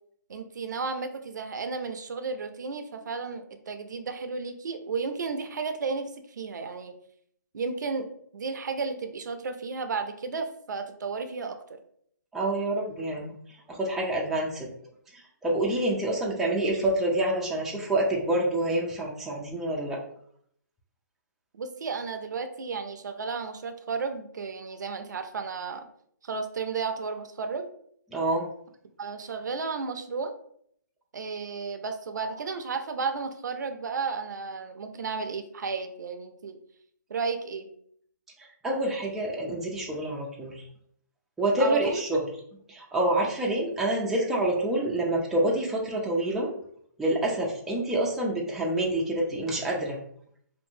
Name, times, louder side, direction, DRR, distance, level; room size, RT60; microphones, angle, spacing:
voice 1, 0.3-6.9 7.5-11.8 21.5-25.9 26.2-27.7 29.0-30.3 31.1-36.6 37.1-37.7 41.6-42.0, right 4 dB, 70° right, 7 dB, 0.4 m, -33 dB
voice 2, 12.3-13.3 13.7-14.7 15.1-20.0 28.1-28.4 38.6-40.6 41.4-42.2 42.7-46.5 47.0-50.0, right 1 dB, 5° right, -3 dB, 0.3 m, -27 dB
2.6 x 2.5 x 2.6 m, 0.65 s
hypercardioid pair, 145°, 10 cm